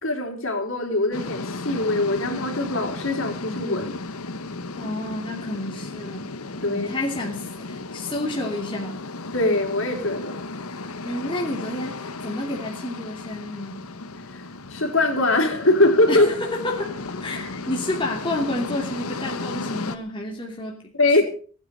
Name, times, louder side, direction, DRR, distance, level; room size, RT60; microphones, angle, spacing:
voice 1, 0.0-4.0 6.6-6.9 9.3-10.4 14.3-16.3 21.0-21.2, left 2 dB, 60° left, 3 dB, 4.1 m, -22 dB
sound 1, 1.1-20.0, left 3 dB, 75° left, 1.3 m, -34 dB
voice 2, 4.8-6.3 6.7-9.0 11.0-13.9 16.1-16.9 17.2-20.9, left 1 dB, 20° left, 0 dB, 2.7 m, -30 dB
18.5 x 9.7 x 6.6 m, 0.42 s
head